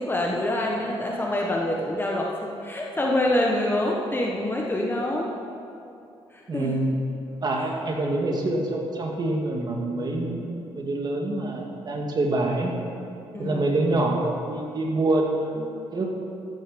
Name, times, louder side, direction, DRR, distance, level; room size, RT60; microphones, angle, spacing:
voice 1, 0.0-5.3 6.3-6.8 13.3-13.6, left 1 dB, 20° left, -1 dB, 1.4 m, -26 dB
voice 2, 6.5-6.9 7.4-12.7 13.4-16.1, right 2 dB, 45° right, 0 dB, 2.1 m, -26 dB
14.0 x 8.2 x 5.3 m, 2.7 s
cardioid pair, 75°, 10 cm